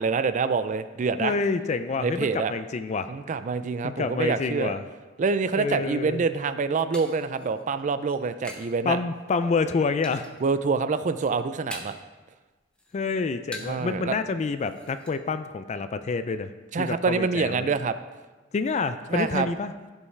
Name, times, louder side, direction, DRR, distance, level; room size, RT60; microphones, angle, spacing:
voice 1, 0.0-1.3 2.0-2.5 3.1-4.7 5.2-9.0 10.4-12.0 13.6-14.1 16.7-18.0 19.1-19.5, right 4 dB, 40° right, 12 dB, 0.4 m, -26 dB
voice 2, 1.2-3.1 3.8-4.8 5.6-6.2 8.9-10.3 12.9-16.5 16.8-17.7 18.5-19.7, left 4 dB, 35° left, 11 dB, 0.3 m, -28 dB
sound 1, 6.2-8.8 9.1-9.6 10.0-10.5 10.9-12.1 12.5-13.9 14.2-14.3 14.6-15.1, left 1 dB, 5° left, 0.9 m, -44 dB
15.5 x 5.4 x 3.3 m, 1.3 s
head